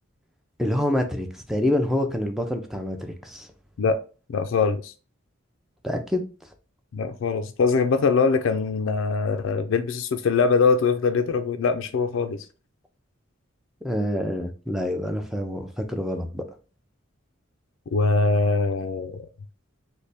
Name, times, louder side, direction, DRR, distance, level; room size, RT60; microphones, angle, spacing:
voice 1, 0.6-3.5 5.8-6.2 13.8-16.4, left 1 dB, ahead, 0.4 m, -26 dB
voice 2, 4.3-4.9 6.9-12.4 17.9-19.2, left 4 dB, 70° left, 0.3 m, -22 dB
3.3 x 2.2 x 4.0 m
head